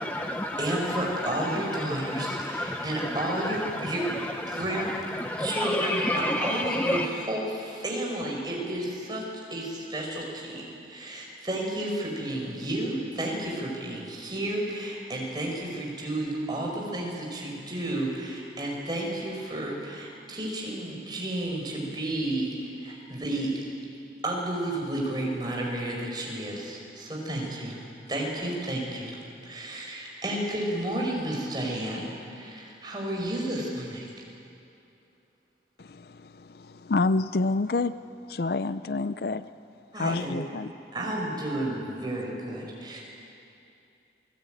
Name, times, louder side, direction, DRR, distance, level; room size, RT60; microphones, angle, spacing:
voice 1, 0.0-7.1, left 1 dB, 10° left, 0.8 m, -31 dB
voice 2, 0.6-4.1 4.5-5.0 5.4-9.2 9.5-23.5 24.2-27.8 28.1-29.2 29.4-32.1 32.3-34.1 39.9-40.4 40.9-43.0, right 1 dB, 25° right, 5.5 m, -32 dB
voice 3, 35.8-37.9 38.3-39.5 40.0-40.7, left 3 dB, 60° left, 0.5 m, -28 dB
28.5 x 20.0 x 9.2 m
head